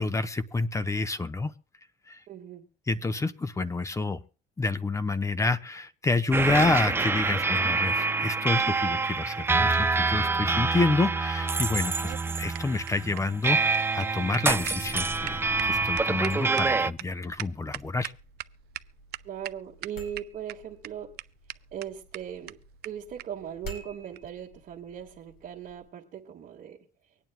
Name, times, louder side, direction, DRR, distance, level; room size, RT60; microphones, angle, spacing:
voice 1, 0.0-1.5 2.1-2.2 2.9-4.2 4.6-18.1, left 3 dB, 20° left, 12 dB, 0.7 m, -28 dB
voice 2, 2.3-2.6 19.2-21.1 21.7-22.6 22.8-26.8, right 9 dB, 55° right, -2 dB, 1.6 m, -39 dB
sound 1, 6.3-16.9, right 4 dB, 15° right, 0.4 m, -26 dB
sound 2, 12.0-18.5 18.8-18.9 19.1-19.5 19.8-20.5 20.8-20.9 21.2-21.3 21.5-21.6 21.8-21.9 22.1-22.2 22.5-22.6 22.8-22.9 23.2-23.3 24.1-24.3, right 16 dB, 70° right, 0.5 m, -39 dB
sound 3, 17.6-25.9, equal, 60° left, 5.2 m, -50 dB
24.5 x 9.1 x 2.2 m, 0.37 s
cardioid pair, 110°, 17 cm